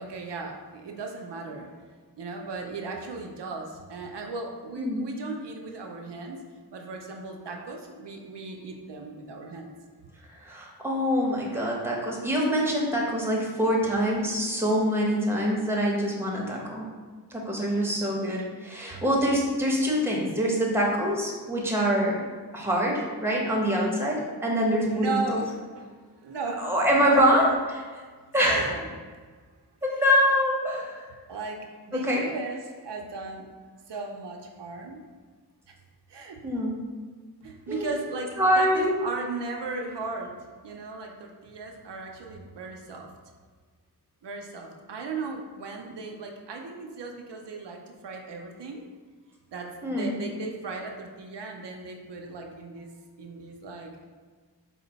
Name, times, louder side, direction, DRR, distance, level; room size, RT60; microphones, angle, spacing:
voice 1, 0.0-1.8 2.2-6.4 6.7-9.7 24.8-27.3 28.5-28.9 30.8-30.9 31.3-31.6 31.9-33.5 33.9-35.0 35.7-35.8 36.1-36.4 37.4-40.3 40.6-43.1 44.2-48.8 49.5-52.9 53.2-54.0, right 3 dB, 85° right, 1 dB, 0.5 m, -36 dB
voice 2, 4.8-5.1 10.4-16.9 17.3-22.2 22.5-25.2 26.6-27.8 28.3-28.7 29.8-31.1 31.9-32.2 36.4-36.8 37.7-37.9 38.4-38.9 49.8-50.2, equal, 5° right, -3 dB, 0.8 m, -25 dB
4.5 x 2.1 x 3.9 m, 1.5 s
wide cardioid pair, 60°, 40 cm